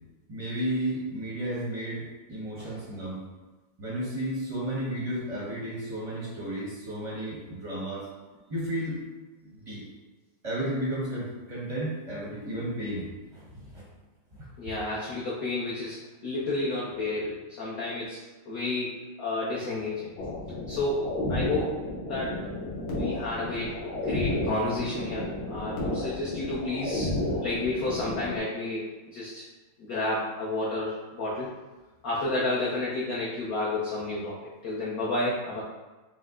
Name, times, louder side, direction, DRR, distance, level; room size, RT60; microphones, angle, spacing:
voice 1, 0.3-3.2 3.8-8.1 8.5-9.0 9.4-9.8 10.4-13.8 14.4-14.5, right 1 dB, 35° right, -7 dB, 0.5 m, -33 dB
voice 2, 14.6-20.1 20.7-22.4 22.9-23.7 24.0-27.1 27.4-28.9 29.1-29.4 29.8-31.5 32.0-34.3 34.6-35.6, left 2 dB, 60° left, -6 dB, 1.0 m, -31 dB
sound 1, 20.2-28.4, left 1 dB, 80° left, 1.7 m, -32 dB
5.3 x 2.0 x 3.6 m, 1.2 s
omnidirectional pair, 2.2 m